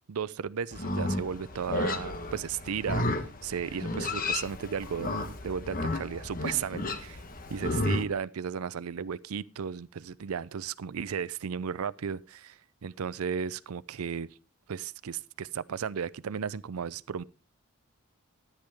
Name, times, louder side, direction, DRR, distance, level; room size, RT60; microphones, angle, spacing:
voice 1, 0.1-5.2 5.4-7.2 7.5-14.3 14.7-17.2, right 7 dB, 85° right, 0.5 m, -35 dB
Livestock farm animals working animals, 0.7-8.0, left 2 dB, 40° left, 1.2 m, -32 dB
13.5 x 9.9 x 3.5 m
head